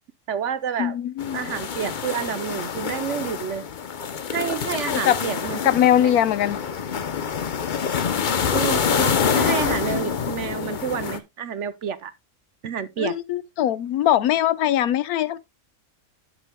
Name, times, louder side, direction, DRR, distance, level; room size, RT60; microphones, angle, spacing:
voice 1, 0.3-1.0 1.3-3.7 4.3-5.7 6.0-6.1 8.5-12.1 12.6-13.2, right 8 dB, 60° right, 1.0 m, -29 dB
voice 2, 0.8-1.4 4.9-5.2 5.6-6.6 13.0-15.4, left 11 dB, 85° left, 1.1 m, -21 dB
sound 1, 1.2-11.2, left 7 dB, 45° left, 0.6 m, -26 dB
11.0 x 7.5 x 2.2 m
omnidirectional pair, 1.6 m